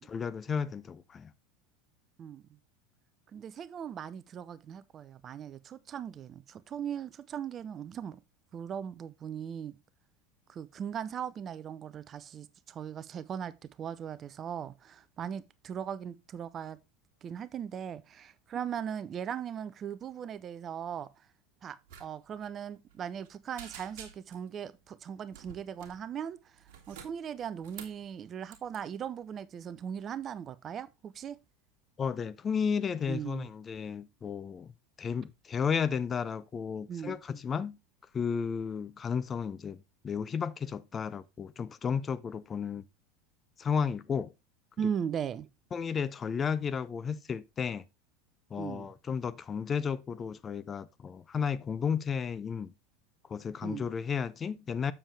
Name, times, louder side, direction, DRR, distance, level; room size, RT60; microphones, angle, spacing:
voice 1, 0.1-1.3 32.0-34.7 35.0-37.8 38.1-42.8 43.6-44.3 45.7-47.8 48.5-52.7 53.3-54.9, left 6 dB, 25° left, 0.5 m, -33 dB
voice 2, 2.2-2.6 3.3-8.2 8.5-9.7 10.5-16.8 17.2-21.3 21.6-31.4 33.1-33.5 36.9-37.2 44.8-45.5 48.6-48.9 53.6-53.9, right 8 dB, 30° right, 0.6 m, -39 dB
sound 1, 21.9-22.1 22.3-22.5 22.9-23.3 23.6-24.5 25.3-26.0 26.6-28.0 28.5-28.8, right 8 dB, 55° right, 1.9 m, -49 dB
7.1 x 7.1 x 3.3 m
figure-of-eight pair, 80°, 0 cm